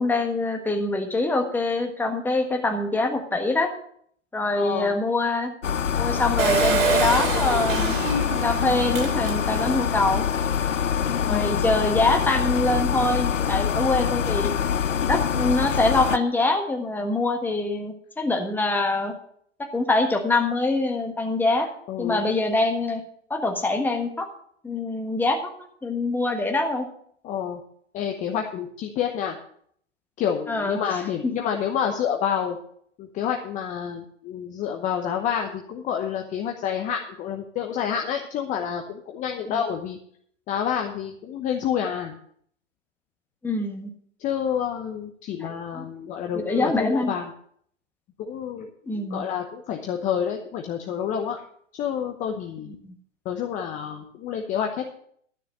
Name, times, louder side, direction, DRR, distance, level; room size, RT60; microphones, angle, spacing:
voice 1, 0.0-3.7 4.3-5.5 6.0-8.0 8.4-10.2 11.2-14.5 15.0-19.2 19.7-21.7 22.0-23.0 23.3-24.3 24.6-25.5 25.8-26.9 30.5-30.8 39.5-39.6 43.4-43.9 45.4-45.9 46.3-47.1 48.9-49.2 52.6-52.9, left 2 dB, 5° left, 3 dB, 1.5 m, -24 dB
voice 2, 4.5-4.9 11.3-11.7 21.9-22.2 27.2-27.6 27.9-29.4 30.2-32.6 33.0-40.0 40.5-42.2 44.2-47.3 48.2-51.4 51.7-52.8 53.2-54.9, left 8 dB, 20° left, 4 dB, 0.9 m, -28 dB
sound 1, 5.6-16.2, left 8 dB, 85° left, 0.6 m, -25 dB
Engine, 6.4-9.8 10.3-10.4 10.6-10.7, right 5 dB, 50° right, 3.3 m, -26 dB
12.5 x 6.8 x 6.6 m, 0.63 s
figure-of-eight pair, 115°, 37 cm